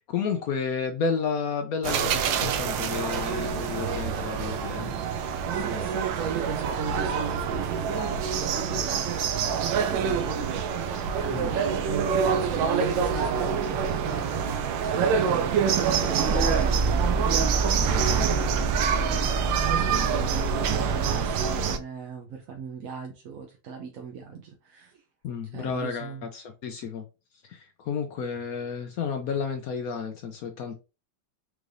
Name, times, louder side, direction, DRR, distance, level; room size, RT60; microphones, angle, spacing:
voice 1, 0.0-4.9 11.3-11.5 25.2-27.1 27.4-30.7, left 6 dB, 70° left, 0.9 m, -31 dB
sound 1, 1.8-21.8, right 7 dB, 85° right, 1.3 m, -26 dB
voice 2, 5.5-25.0 25.5-26.3, right 5 dB, 60° right, 0.9 m, -38 dB
sound 2, 16.2-21.7, right 2 dB, 30° right, 1.2 m, -29 dB
4.7 x 3.2 x 2.6 m
omnidirectional pair, 2.0 m